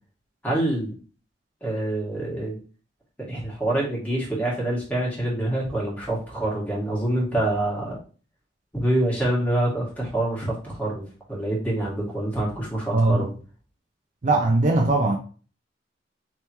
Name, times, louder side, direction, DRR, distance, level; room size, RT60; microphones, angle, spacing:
voice 1, 0.4-0.9 1.6-2.6 3.2-8.0 8.7-13.3, right 1 dB, 10° left, 1.7 m, -26 dB
voice 2, 12.9-13.3 14.2-15.2, right 2 dB, 40° right, 0.5 m, -20 dB
3.4 x 3.0 x 4.2 m
head